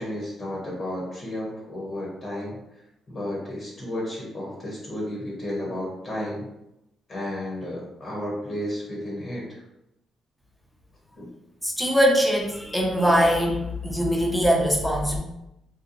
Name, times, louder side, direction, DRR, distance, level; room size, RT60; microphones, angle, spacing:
voice 1, 0.0-2.6 3.1-6.4 7.1-9.6 11.2-11.3, left 1 dB, 40° left, -3 dB, 0.9 m, -32 dB
voice 2, 11.6-15.2, equal, ahead, -1 dB, 0.6 m, -22 dB
2.7 x 2.1 x 2.6 m, 0.87 s
cardioid pair, 90°, 0 cm